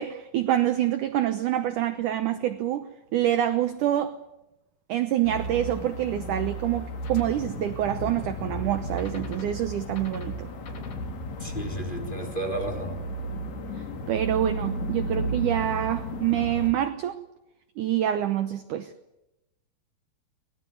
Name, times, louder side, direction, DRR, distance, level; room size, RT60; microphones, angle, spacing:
voice 1, 0.0-4.1 4.9-10.5 14.1-17.2 17.8-18.9, right 12 dB, 75° right, 11 dB, 1.9 m, -26 dB
sound 1, 5.2-16.7, right 1 dB, 50° left, 3.1 m, -34 dB
sound 2, 7.0-12.2, left 3 dB, 65° left, 5.3 m, -39 dB
voice 2, 11.4-13.0, right 1 dB, 15° left, 5 dB, 3.3 m, -32 dB
23.5 x 20.5 x 9.4 m, 0.93 s
omnidirectional pair, 4.8 m